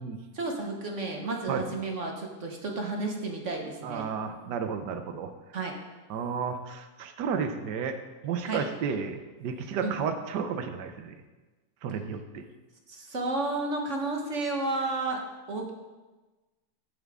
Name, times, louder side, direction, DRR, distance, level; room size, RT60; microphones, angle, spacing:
voice 1, 0.3-4.1 5.5-5.7 8.4-8.6 9.8-10.0 12.9-15.2 15.5-15.7, right 2 dB, 45° right, 1 dB, 1.5 m, -32 dB
voice 2, 3.8-5.3 6.1-8.0 8.2-11.1 11.8-12.4, right 6 dB, 70° right, 8 dB, 1.5 m, -32 dB
15.5 x 7.5 x 3.7 m, 1.2 s
omnidirectional pair, 2.0 m